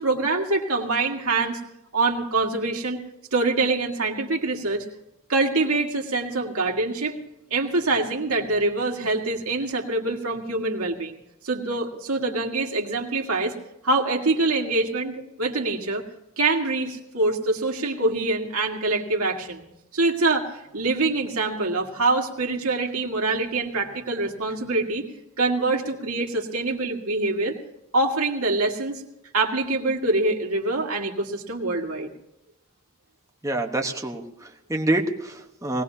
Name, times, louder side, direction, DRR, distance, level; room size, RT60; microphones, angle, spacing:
voice 1, 0.0-1.6 1.9-3.0 3.3-4.8 5.3-7.2 7.5-13.5 13.8-16.0 16.4-19.6 19.9-25.1 25.4-27.6 27.9-29.0 29.3-32.1, right 2 dB, 80° right, 2 dB, 1.9 m, -25 dB
voice 2, 33.4-35.8, right 2 dB, 15° right, 3 dB, 1.1 m, -27 dB
20.5 x 18.5 x 2.8 m, 0.88 s
head